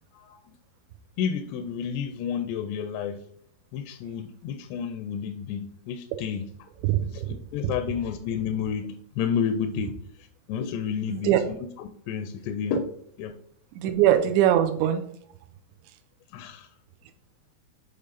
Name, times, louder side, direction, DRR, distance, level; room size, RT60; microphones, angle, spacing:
voice 1, 0.1-0.4 1.2-3.2 3.7-6.5 7.0-11.7 12.1-12.8 13.2-13.4 16.3-16.7, left 7 dB, 85° left, 7 dB, 2.6 m, -31 dB
voice 2, 6.8-7.4 7.6-7.7 11.1-11.4 13.8-15.0, right 11 dB, 90° right, 7 dB, 2.9 m, -22 dB
8.8 x 3.4 x 4.0 m, 0.67 s
omnidirectional pair, 5.0 m